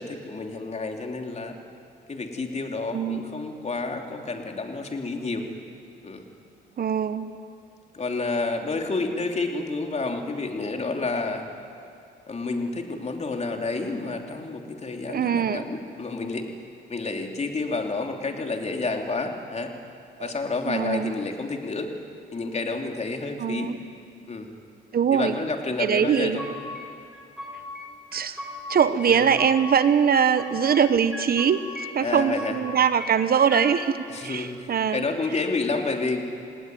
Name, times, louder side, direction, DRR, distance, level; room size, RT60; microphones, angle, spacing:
voice 1, 0.0-1.6 2.1-5.5 6.0-6.2 7.9-11.5 12.3-16.5 16.9-19.7 20.2-21.9 22.3-23.7 24.3-24.5 25.1-26.4 32.0-32.6 34.1-36.2, left 3 dB, 35° left, 3 dB, 3.1 m, -29 dB
voice 2, 2.9-3.2 6.8-7.3 15.1-15.7 20.2-20.3 20.7-21.1 23.4-23.8 24.9-25.3 25.8-26.4 28.1-28.4 28.7-35.1, right 7 dB, 50° right, 12 dB, 1.1 m, -22 dB
sound 1, 25.9-26.8 27.1-27.9 28.1-29.6 29.9-30.9 31.1-33.7, left 1 dB, 5° right, 6.5 m, -37 dB
28.0 x 19.0 x 9.3 m, 2.4 s
cardioid pair, 90°, 20 cm